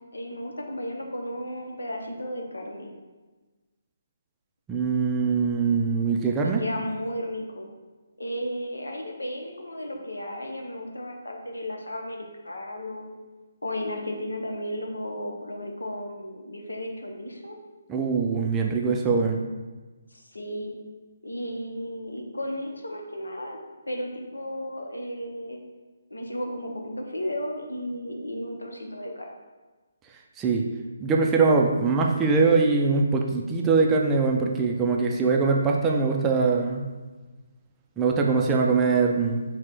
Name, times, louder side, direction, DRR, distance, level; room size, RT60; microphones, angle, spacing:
voice 1, 0.1-2.9 6.4-7.7 8.2-13.1 13.6-17.5 20.1-20.8 21.2-23.6 23.9-25.6 26.1-29.4, left 1 dB, 90° left, 1 dB, 0.7 m, -34 dB
voice 2, 4.7-6.6 17.9-19.4 30.4-30.6 31.0-36.9 38.0-39.4, right 4 dB, 15° right, 0 dB, 0.4 m, -22 dB
4.0 x 2.2 x 4.5 m, 1.3 s
figure-of-eight pair, 145°, 0 cm